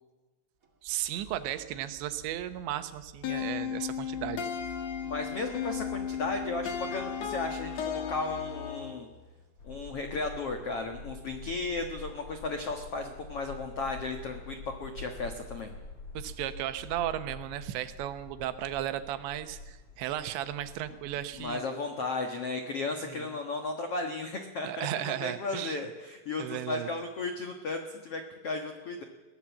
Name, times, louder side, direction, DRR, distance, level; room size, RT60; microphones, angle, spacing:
sound 1, 0.6-11.4, left 2 dB, 30° right, 1.5 m, -51 dB
voice 1, 0.8-4.5 16.1-21.6 23.0-23.3 24.6-25.8 26.4-26.9, right 12 dB, 85° right, 11 dB, 3.3 m, -35 dB
sound 2, 3.2-9.0, left 8 dB, 55° left, 2.0 m, -35 dB
voice 2, 5.0-9.1 9.6-15.7 21.4-29.0, left 3 dB, 75° left, 5 dB, 1.3 m, -35 dB
sound 3, 9.6-21.5, left 3 dB, 35° left, 2.2 m, -46 dB
22.0 x 17.0 x 7.3 m, 1.2 s
omnidirectional pair, 5.1 m